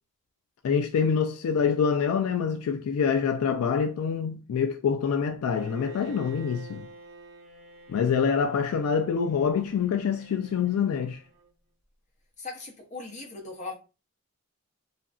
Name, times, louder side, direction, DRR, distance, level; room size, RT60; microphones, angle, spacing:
voice 1, 0.6-6.9 7.9-11.2, left 6 dB, 75° left, 0.3 m, -26 dB
Bowed string instrument, 5.5-11.5, right 2 dB, 40° right, 1.0 m, -49 dB
voice 2, 12.4-13.8, left 3 dB, 30° left, 0.8 m, -39 dB
2.7 x 2.5 x 2.3 m
head